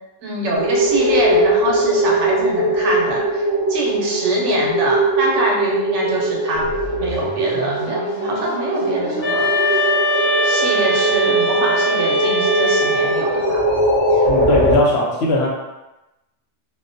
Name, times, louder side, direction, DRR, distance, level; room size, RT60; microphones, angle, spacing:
voice 1, 0.2-6.7 7.0-9.9 10.4-13.6, right 2 dB, 75° right, -2 dB, 0.9 m, -24 dB
sound 1, 0.5-14.8, right 1 dB, 45° right, 0.3 m, -20 dB
sound 2, 6.5-14.3, left 1 dB, 85° left, 1.0 m, -34 dB
sound 3, 9.2-13.4, right 1 dB, 25° left, 0.7 m, -20 dB
voice 2, 14.3-15.5, left 1 dB, 65° left, -2 dB, 0.8 m, -19 dB
2.4 x 2.1 x 2.5 m, 0.97 s
omnidirectional pair, 1.3 m